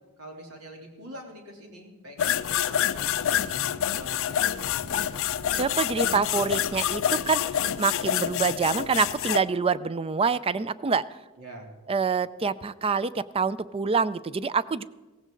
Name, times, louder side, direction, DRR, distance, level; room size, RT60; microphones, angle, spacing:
voice 1, 0.2-2.4 2.6-4.8 11.4-11.7, equal, 80° right, 1 dB, 3.2 m, -45 dB
sound 1, 2.2-9.4, left 10 dB, 65° left, 0.4 m, -27 dB
sound 2, 2.6-7.6, equal, 65° right, 1.6 m, -49 dB
voice 2, 5.5-11.0 11.9-14.8, right 5 dB, 25° right, 17 dB, 0.4 m, -26 dB
17.0 x 15.5 x 3.9 m, 1.2 s
head